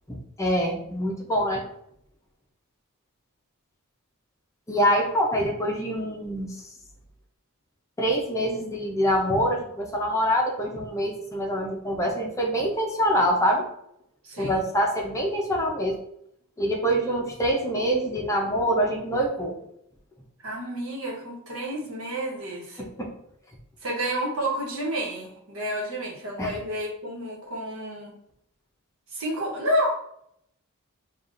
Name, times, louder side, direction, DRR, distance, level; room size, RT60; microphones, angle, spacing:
voice 1, 0.1-1.6 4.7-6.5 8.0-13.7 14.4-16.0 16.6-19.6 22.8-23.1 26.4-26.6, equal, 15° left, 0 dB, 0.6 m, -25 dB
voice 2, 14.2-14.6 20.4-22.8 23.8-28.1 29.1-29.9, equal, 70° right, -2 dB, 1.2 m, -30 dB
7.0 x 2.4 x 2.5 m, 0.72 s
head